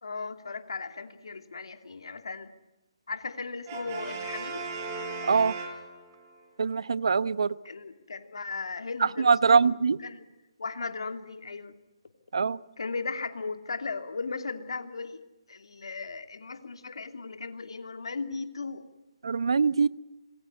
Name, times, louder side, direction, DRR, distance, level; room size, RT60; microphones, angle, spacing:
voice 1, 0.0-2.5 3.1-4.7 7.6-9.7 10.0-10.2 10.6-11.7 12.8-15.2 15.5-18.9, left 4 dB, 70° left, 7 dB, 2.8 m, -37 dB
Brass instrument, 3.7-6.3, right 4 dB, 30° right, 5.4 m, -37 dB
voice 2, 6.6-7.5 9.2-10.0 12.3-12.6 19.2-19.9, right 5 dB, 65° right, 17 dB, 0.9 m, -23 dB
27.0 x 21.5 x 9.6 m, 1.0 s
figure-of-eight pair, 145°, 3 cm